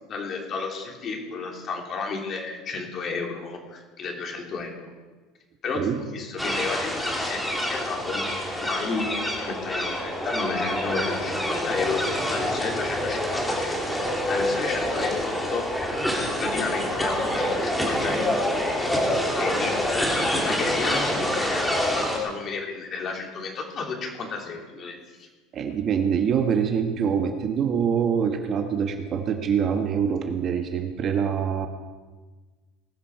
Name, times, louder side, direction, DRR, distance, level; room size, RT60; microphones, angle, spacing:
voice 1, 0.1-4.9 5.6-12.0 12.3-15.6 16.4-18.4 19.4-20.0 20.4-21.6 21.9-25.3, left 4 dB, 35° left, 1 dB, 3.0 m, -32 dB
sound 1, 6.4-22.2, left 1 dB, 5° left, 2.8 m, -26 dB
voice 2, 25.5-31.7, right 7 dB, 35° right, 6 dB, 1.4 m, -25 dB
20.0 x 12.5 x 4.8 m, 1.3 s
cardioid pair, 150°, 0 cm